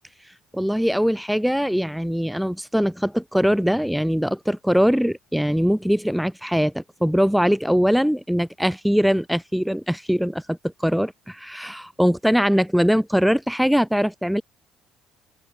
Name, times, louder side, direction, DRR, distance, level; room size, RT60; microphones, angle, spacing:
voice 1, 0.5-14.4, equal, ahead, 0.8 m, -21 dB
open air
supercardioid pair, 70°, 0 cm